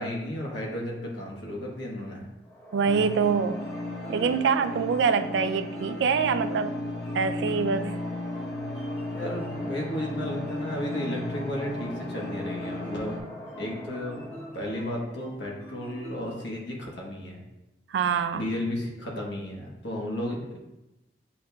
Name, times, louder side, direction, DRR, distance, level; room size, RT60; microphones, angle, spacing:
voice 1, 0.0-2.3 9.1-13.2 13.6-17.4 18.3-20.6, left 1 dB, 90° left, 1.0 m, -33 dB
sound 1, 2.4-14.9, equal, 15° left, 0.7 m, -45 dB
sound 2, 2.7-16.5, equal, 35° left, 1.2 m, -45 dB
voice 2, 2.7-3.6 4.1-6.8 7.1-7.9 17.9-18.4, right 6 dB, 80° right, 0.3 m, -25 dB
sound 3, 2.9-13.2, left 1 dB, 70° left, 0.7 m, -35 dB
8.4 x 2.8 x 2.2 m
head